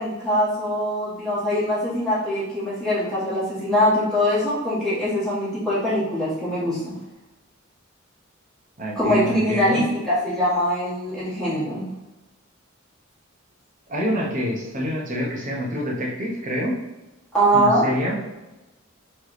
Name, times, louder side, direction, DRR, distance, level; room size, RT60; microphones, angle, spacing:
voice 1, 0.0-6.9 8.9-11.9 17.3-17.9, equal, 5° left, -11 dB, 1.5 m, -22 dB
voice 2, 8.8-9.8 13.9-16.8 17.5-18.2, equal, 40° right, -2 dB, 1.1 m, -26 dB
4.4 x 3.2 x 3.1 m, 1.1 s
head